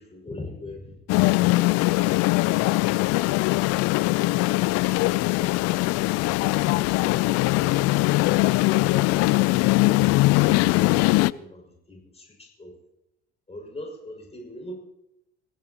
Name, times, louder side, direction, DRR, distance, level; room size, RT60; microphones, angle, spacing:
voice 1, 0.0-4.3 11.3-12.8 13.5-14.7, left 1 dB, 20° left, -1 dB, 6.1 m, -42 dB
sound 1, 1.1-11.3, left 21 dB, 55° left, 0.5 m, -21 dB
26.5 x 16.0 x 3.0 m, 0.82 s
figure-of-eight pair, 55°, 31 cm